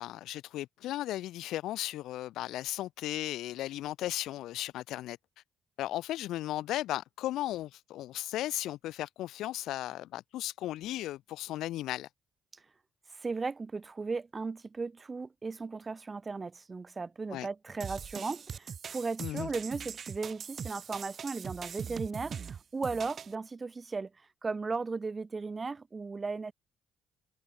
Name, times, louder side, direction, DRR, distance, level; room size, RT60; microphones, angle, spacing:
voice 1, 0.0-5.2 5.8-12.1 17.3-17.5 19.2-19.5, left 14 dB, 85° left, 1.8 m, -36 dB
voice 2, 13.1-24.1 24.4-26.5, right 4 dB, 30° right, 4.4 m, -36 dB
sound 1, 17.8-23.3, right 7 dB, 50° right, 5.8 m, -41 dB
cardioid pair, 90°, 0 cm